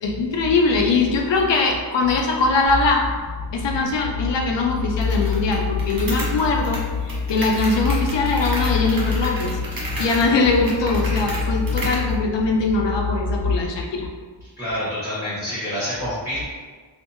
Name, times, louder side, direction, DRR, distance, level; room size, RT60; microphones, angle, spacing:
voice 1, 0.0-3.1 3.5-9.6 10.0-14.1, left 3 dB, 70° left, 1 dB, 0.5 m, -21 dB
sound 1, 2.6-13.6, left 5 dB, 70° right, 1.0 m, -27 dB
sound 2, 5.0-12.1, right 1 dB, 50° right, 0.7 m, -33 dB
voice 2, 14.6-16.5, equal, 5° right, -13 dB, 1.0 m, -27 dB
2.6 x 2.5 x 2.5 m, 1.5 s
wide cardioid pair, 90°, 45 cm